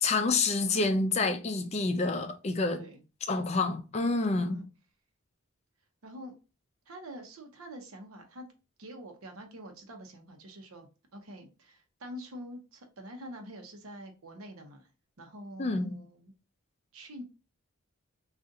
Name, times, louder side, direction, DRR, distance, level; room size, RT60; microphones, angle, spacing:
voice 1, 0.0-2.8 3.3-4.6 15.6-16.0, left 3 dB, 30° left, 0.4 m, -28 dB
voice 2, 2.7-3.0 4.3-4.7 6.0-6.3 6.9-8.4 8.8-14.9 15.2-16.3 16.9-17.2, equal, 90° right, 0.8 m, -46 dB
3.7 x 2.4 x 2.6 m
head